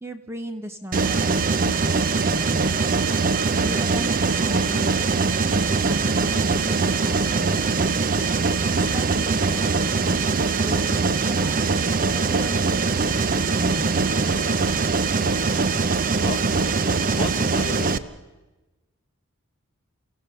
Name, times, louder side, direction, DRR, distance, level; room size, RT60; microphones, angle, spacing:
voice 1, 0.0-2.8 3.6-5.2 5.5-8.0 8.7-10.2 10.6-11.6 11.9-14.4, equal, 10° right, 7 dB, 0.8 m, -36 dB
Mechanisms, 0.9-18.0, right 4 dB, 40° right, 0.6 m, -22 dB
voice 2, 17.2-17.9, left 3 dB, 25° left, 7 dB, 1.2 m, -32 dB
29.0 x 16.0 x 7.0 m, 1.2 s
head